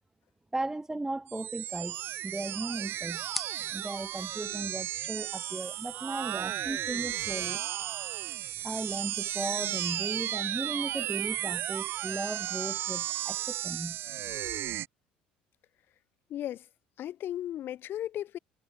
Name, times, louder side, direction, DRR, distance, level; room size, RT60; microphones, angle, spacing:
voice 1, 0.5-3.2 3.7-7.6 8.6-14.0, right 2 dB, 10° right, 2.4 m, -36 dB
sound 1, 1.3-14.9, right 13 dB, 55° right, 1.8 m, -34 dB
sound 2, 1.9-9.5, equal, 5° left, 4.2 m, -49 dB
voice 2, 16.3-16.7 17.0-18.4, left 12 dB, 55° left, 3.6 m, -35 dB
hypercardioid pair, 60°, 5 cm